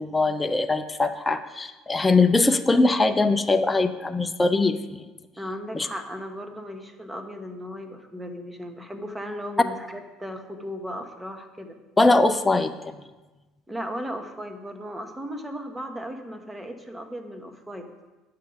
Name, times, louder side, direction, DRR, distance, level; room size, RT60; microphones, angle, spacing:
voice 1, 0.0-4.8 5.7-5.9 12.0-12.9, left 3 dB, 15° left, 7 dB, 0.5 m, -21 dB
voice 2, 5.3-11.8 13.7-17.9, equal, 10° right, 6 dB, 1.1 m, -36 dB
9.2 x 6.6 x 5.1 m, 1.2 s
supercardioid pair, 95°, 0 cm